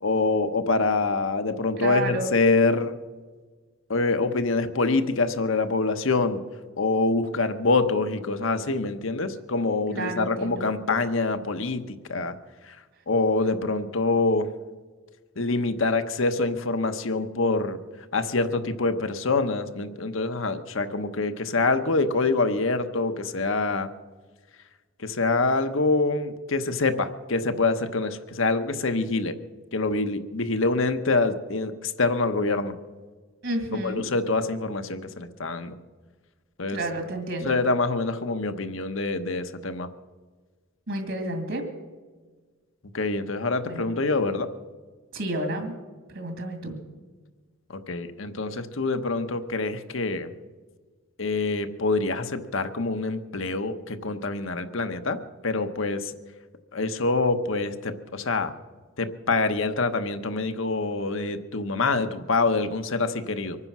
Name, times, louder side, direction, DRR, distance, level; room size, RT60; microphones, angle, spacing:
voice 1, 0.0-3.0 3.9-6.4 6.8-12.3 12.7-12.8 13.1-14.5 15.4-17.8 18.1-23.9 25.0-29.4 29.7-32.7 33.7-35.8 36.6-36.8 37.4-39.9 42.9-44.5 47.7-50.3 51.2-56.1 56.7-58.5 59.0-63.6, left 3 dB, 65° left, 8 dB, 1.0 m, -25 dB
voice 2, 1.8-2.3 9.9-10.6 33.4-34.1 36.7-37.5 40.9-41.7 43.7-43.9 45.1-45.7 46.1-46.8, right 1 dB, 60° right, 4 dB, 2.3 m, -30 dB
24.0 x 9.8 x 6.0 m, 1.4 s
head